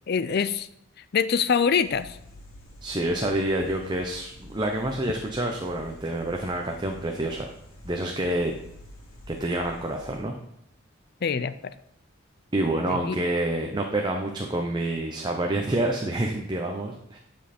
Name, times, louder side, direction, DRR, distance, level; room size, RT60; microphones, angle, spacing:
voice 1, 0.1-0.7 1.1-2.2 11.2-11.7 12.9-13.2, left 6 dB, 50° left, 14 dB, 0.4 m, -24 dB
sound 1, 1.8-10.2, left 1 dB, 80° left, 2.6 m, -48 dB
voice 2, 2.8-7.5 7.8-8.5 9.3-10.3 12.5-17.2, right 1 dB, 20° right, 2 dB, 0.8 m, -28 dB
12.5 x 5.3 x 4.3 m, 0.76 s
head